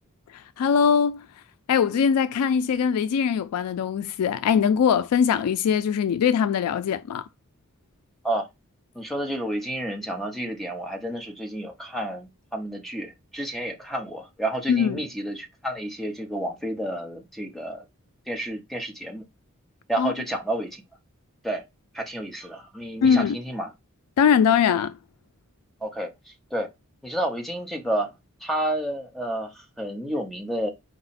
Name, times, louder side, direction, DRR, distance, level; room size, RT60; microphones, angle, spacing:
voice 1, 0.3-1.2 1.7-7.2 14.7-15.0 20.0-20.1 23.0-23.4 24.2-25.0, left 7 dB, 85° left, 0.3 m, -21 dB
voice 2, 8.9-17.8 18.3-19.2 19.9-20.8 21.4-21.6 21.9-23.7 25.8-26.1 26.5-26.7 27.0-28.1 28.4-30.7, right 1 dB, ahead, 0.7 m, -30 dB
4.7 x 2.1 x 4.0 m
head